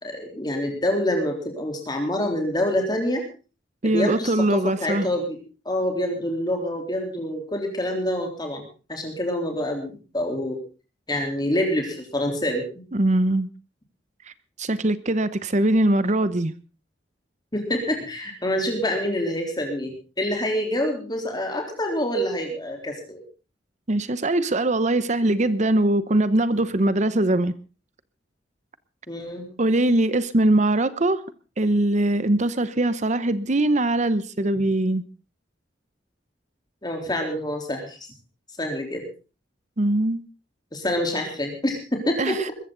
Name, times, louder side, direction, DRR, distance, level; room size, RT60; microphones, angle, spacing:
voice 1, 0.0-3.2 3.8-5.4 5.7-8.6 8.9-10.6 11.1-12.8 17.5-19.9 20.2-23.2 29.1-29.5 36.8-38.0 38.6-39.0 40.7-42.4, left 1 dB, 25° left, 2 dB, 3.7 m, -26 dB
voice 2, 3.8-5.1 12.9-13.5 14.3-14.4 14.6-16.5 23.9-27.5 29.6-31.2 31.6-35.0 39.8-40.2 42.2-42.5, right 1 dB, 40° right, 14 dB, 0.9 m, -21 dB
21.0 x 15.0 x 3.9 m, 0.34 s
head